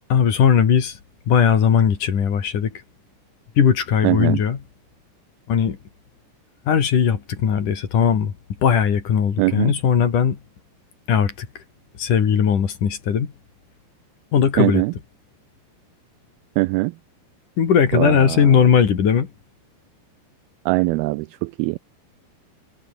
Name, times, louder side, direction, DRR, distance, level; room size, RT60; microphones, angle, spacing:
voice 1, 0.1-1.0 1.3-2.8 3.6-4.6 5.5-5.8 6.7-8.3 8.6-10.4 11.1-11.6 12.0-13.3 14.3-14.8 17.6-19.3, left 7 dB, 50° left, 3.9 m, -18 dB
voice 2, 4.0-4.4 9.4-9.7 14.6-14.9 16.6-16.9 17.9-18.5 20.7-21.8, right 22 dB, 90° right, 2.2 m, -21 dB
omnidirectional pair, 4.9 m